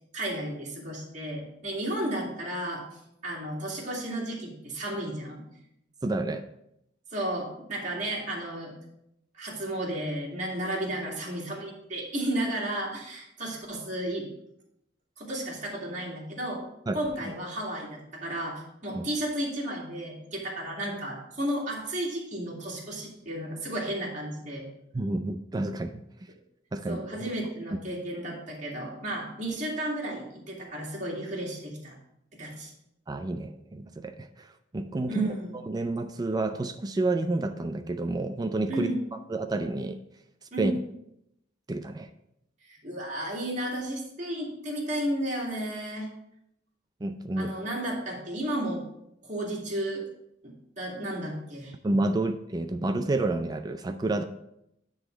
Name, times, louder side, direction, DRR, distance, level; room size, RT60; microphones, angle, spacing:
voice 1, 0.1-2.8 3.2-5.4 7.1-8.7 9.3-14.3 15.2-16.6 16.9-24.7 26.9-31.9 32.4-32.7 35.1-35.6 38.7-39.0 40.5-40.7 42.7-46.1 47.4-48.8 49.2-50.0 50.4-51.7, right 1 dB, 40° right, -3 dB, 2.2 m, -33 dB
voice 2, 6.0-6.5 16.9-17.0 18.9-19.0 24.9-26.0 26.7-27.3 33.1-35.3 35.6-38.9 39.3-40.0 40.6-40.7 41.7-42.1 47.0-47.5 51.8-54.2, right 2 dB, 20° right, 8 dB, 0.4 m, -29 dB
9.9 x 3.9 x 5.1 m, 0.80 s
head